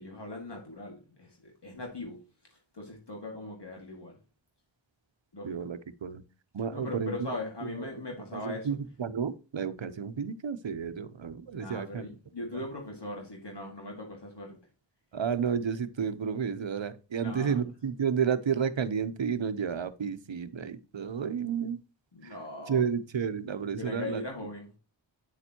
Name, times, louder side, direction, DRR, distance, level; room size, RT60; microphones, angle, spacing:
voice 1, 0.0-2.3 2.7-4.2 5.3-5.6 6.7-8.7 11.6-14.6 17.1-17.6 22.1-22.8 23.8-24.7, left 2 dB, 60° left, 2.1 m, -40 dB
voice 2, 5.4-6.2 6.5-7.4 7.8-7.9 8.3-12.1 12.5-12.6 15.1-21.8 22.2-22.3 22.7-24.2, right 7 dB, 75° right, 0.8 m, -31 dB
9.1 x 6.8 x 2.9 m
wide cardioid pair, 40°, 46 cm